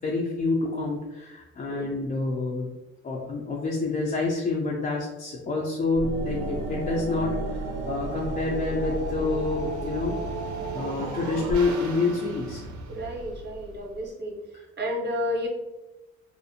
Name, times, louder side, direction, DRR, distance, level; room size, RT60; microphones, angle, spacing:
voice 1, 0.0-2.7 3.0-10.2 10.7-12.7, left 3 dB, 30° left, -3 dB, 0.4 m, -28 dB
voice 2, 1.7-2.0 12.9-14.3 14.8-15.5, equal, 35° right, -1 dB, 0.7 m, -31 dB
sound 1, 5.9-14.0, right 1 dB, 75° right, 0.5 m, -33 dB
2.5 x 2.0 x 2.7 m, 1.0 s
cardioid pair, 90°, 30 cm